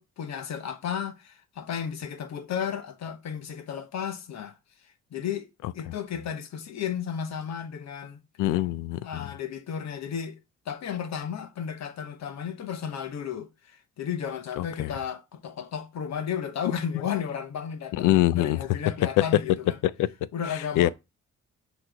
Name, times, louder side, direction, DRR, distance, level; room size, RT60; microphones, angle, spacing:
voice 1, 0.0-4.6 5.1-5.5 5.7-8.2 9.0-10.4 10.7-19.8 20.3-20.9, left 8 dB, 60° left, 1.0 m, -33 dB
voice 2, 8.4-9.2 14.6-14.9 17.9-18.7 19.8-20.3 20.8-20.9, left 15 dB, 85° left, 0.5 m, -24 dB
6.1 x 3.1 x 5.0 m
cardioid pair, 90°, 30 cm